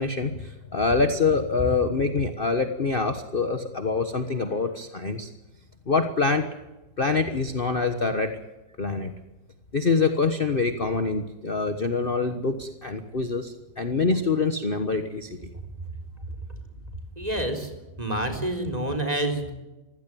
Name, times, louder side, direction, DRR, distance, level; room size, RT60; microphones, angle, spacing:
voice 1, 0.0-5.3 5.9-6.5 7.0-8.3 8.8-9.1 9.7-15.5, left 4 dB, 35° left, 7 dB, 1.4 m, -25 dB
voice 2, 17.2-17.7 18.0-19.5, right 1 dB, 20° right, 4 dB, 4.1 m, -27 dB
24.5 x 16.5 x 9.1 m, 1.1 s
omnidirectional pair, 1.9 m